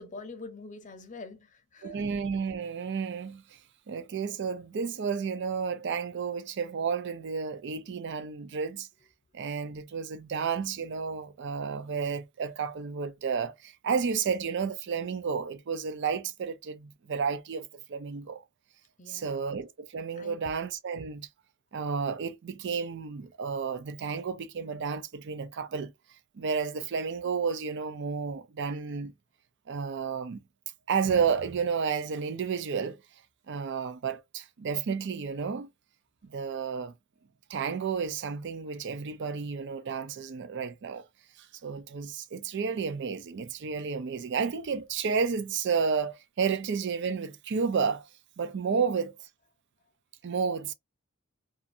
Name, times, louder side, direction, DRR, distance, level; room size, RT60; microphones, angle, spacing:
voice 1, 0.0-2.1 19.0-19.4 20.2-20.4 48.7-48.9, left 3 dB, 35° left, 0.6 m, -45 dB
voice 2, 1.8-3.4 3.9-8.9 9.3-18.4 19.1-21.3 21.7-25.9 26.3-29.1 29.7-30.4 30.9-33.0 33.5-35.7 36.2-36.9 37.5-41.0 41.4-48.1 48.4-49.1 50.2-50.7, right 6 dB, 55° right, 0.4 m, -31 dB
2.5 x 2.5 x 2.6 m
head